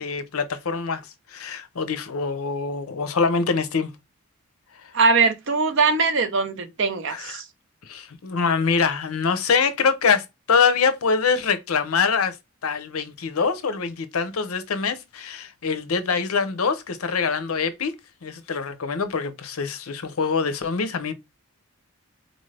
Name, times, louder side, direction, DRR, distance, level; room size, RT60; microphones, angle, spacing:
voice 1, 0.0-3.9 4.7-4.9 7.1-7.4 7.8-12.4 12.6-17.9 18.2-21.1, left 5 dB, 75° left, 0.6 m, -24 dB
voice 2, 4.9-7.4, right 4 dB, 55° right, 0.7 m, -21 dB
3.9 x 2.6 x 3.2 m
head